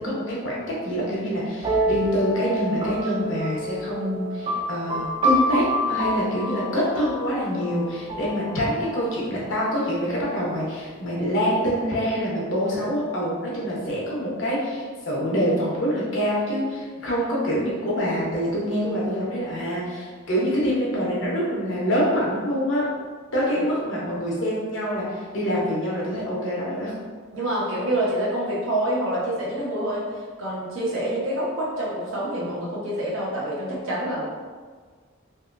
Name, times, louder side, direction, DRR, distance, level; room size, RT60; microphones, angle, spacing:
voice 1, 0.0-22.9 23.3-27.1, equal, 70° left, -5 dB, 0.9 m, -25 dB
sound 1, 1.6-9.2, equal, 25° right, 0.3 m, -28 dB
voice 2, 27.3-30.0 30.4-34.2, right 1 dB, 75° right, -6 dB, 0.9 m, -27 dB
2.9 x 2.7 x 2.5 m, 1.5 s
head